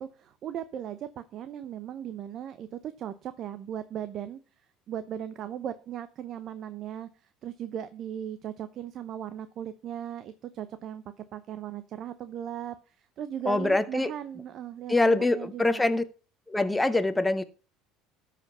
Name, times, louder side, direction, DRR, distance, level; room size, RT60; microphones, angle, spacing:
voice 1, 0.0-4.4 4.9-15.8, right 10 dB, 50° right, 0.8 m, -38 dB
voice 2, 13.5-14.1 14.9-16.0 16.5-17.4, left 2 dB, 10° left, 1.0 m, -24 dB
13.0 x 5.1 x 5.6 m
supercardioid pair, 115°, 0 cm